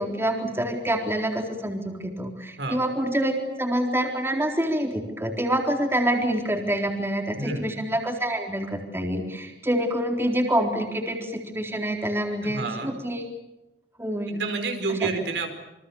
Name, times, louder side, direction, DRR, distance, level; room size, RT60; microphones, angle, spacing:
voice 1, 0.0-13.2 14.0-14.4, right 1 dB, 15° right, 2 dB, 3.9 m, -26 dB
voice 2, 7.3-7.7 12.4-12.9 14.3-15.5, right 3 dB, 80° right, 5 dB, 4.9 m, -29 dB
28.0 x 24.5 x 7.2 m, 0.96 s
head